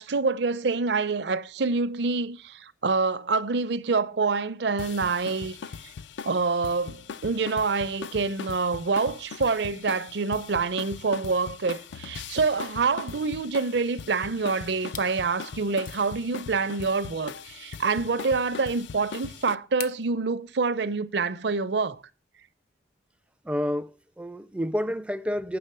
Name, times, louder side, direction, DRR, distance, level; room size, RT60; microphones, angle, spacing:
voice 1, 0.0-5.6 6.2-22.0, right 4 dB, 70° right, 0.6 m, -26 dB
sound 1, 4.8-19.6, left 6 dB, 75° left, 0.4 m, -40 dB
sound 2, 14.9-15.2 15.7-16.2 17.7-17.8 19.8-20.1, left 8 dB, 45° left, 0.7 m, -41 dB
voice 2, 23.5-25.6, equal, 5° right, 0.4 m, -29 dB
8.5 x 6.0 x 6.6 m
head